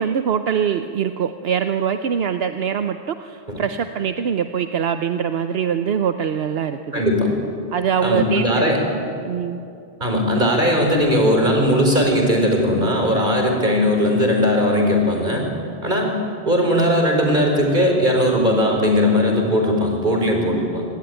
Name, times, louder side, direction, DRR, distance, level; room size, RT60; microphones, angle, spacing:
voice 1, 0.0-7.0 7.7-9.6, right 7 dB, 75° right, 8 dB, 1.0 m, -23 dB
voice 2, 6.9-7.3 8.0-8.8 10.0-15.4 15.8-16.2 16.5-20.8, equal, 50° right, 2 dB, 4.4 m, -18 dB
25.0 x 19.0 x 9.1 m, 2.5 s
omnidirectional pair, 1.0 m